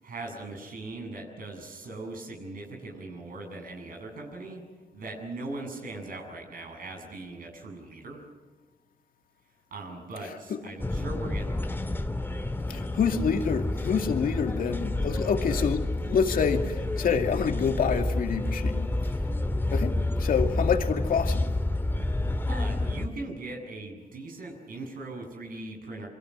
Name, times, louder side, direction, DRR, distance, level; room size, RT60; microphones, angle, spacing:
voice 1, 0.0-4.6 4.9-8.2 9.7-11.8 22.5-26.1, right 2 dB, 70° right, 7.7 m, -40 dB
sound 1, 10.8-23.1, left 2 dB, 15° left, 1.8 m, -29 dB
voice 2, 12.7-18.9 19.7-21.5, left 6 dB, 75° left, 2.3 m, -27 dB
28.0 x 23.0 x 6.4 m
cardioid pair, 80°, 15 cm